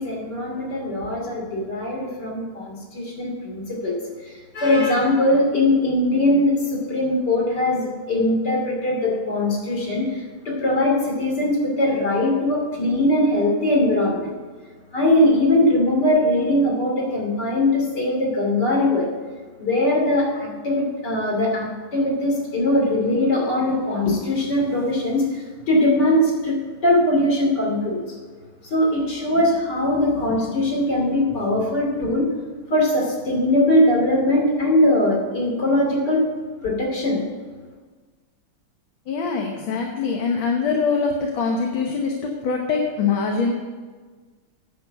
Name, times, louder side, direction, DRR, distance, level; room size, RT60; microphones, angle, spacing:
voice 1, 0.0-14.3 14.9-19.1 19.6-26.6 26.8-28.0 28.6-32.3 32.7-36.2 36.6-37.2, left 1 dB, 50° left, -1 dB, 3.2 m, -21 dB
voice 2, 39.1-43.5, left 5 dB, 65° left, 1 dB, 1.8 m, -23 dB
9.8 x 7.0 x 7.8 m, 1.4 s
omnidirectional pair, 2.4 m